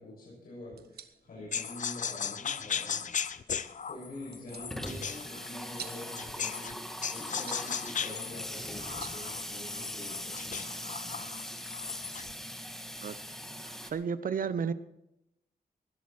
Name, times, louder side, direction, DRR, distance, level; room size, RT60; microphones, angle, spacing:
voice 1, 0.0-3.3 3.9-11.2, left 1 dB, 70° left, -6 dB, 6.9 m, -46 dB
sound 1, 0.6-10.1, right 7 dB, 80° right, 1.2 m, -53 dB
sound 2, 1.5-6.7 7.0-12.3, left 7 dB, 55° left, 0.6 m, -37 dB
Water tap faucet / Sink (filling or washing), 3.3-3.4 3.7-3.8 4.0-13.9, equal, 5° left, 1.4 m, -41 dB
voice 2, 13.6-14.7, right 6 dB, 60° right, 14 dB, 0.8 m, -32 dB
19.0 x 12.0 x 4.4 m, 0.85 s
wide cardioid pair, 175°, 16 cm